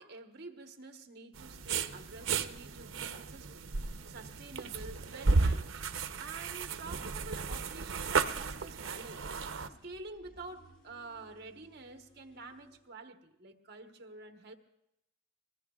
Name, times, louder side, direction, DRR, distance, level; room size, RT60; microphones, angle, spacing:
voice 1, 0.0-3.7 4.1-5.8 6.2-9.4 9.8-14.5, right 3 dB, 50° right, 1.2 m, -48 dB
sound 1, 1.3-9.7, right 4 dB, 75° right, 0.7 m, -34 dB
sound 2, 4.3-12.8, right 1 dB, 80° left, 4.9 m, -64 dB
25.0 x 20.5 x 2.4 m
head